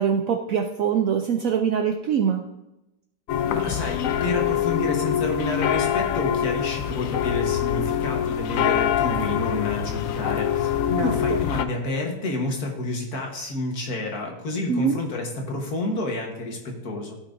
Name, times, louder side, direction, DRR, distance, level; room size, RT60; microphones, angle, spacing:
voice 1, 0.0-2.4 11.0-11.4 14.7-15.0, right 7 dB, 70° right, 4 dB, 0.8 m, -23 dB
sound 1, 3.3-11.6, left 9 dB, 75° left, 0.7 m, -24 dB
voice 2, 3.5-17.1, left 2 dB, 60° left, 1 dB, 1.7 m, -29 dB
14.5 x 5.7 x 2.6 m, 0.94 s
omnidirectional pair, 1.9 m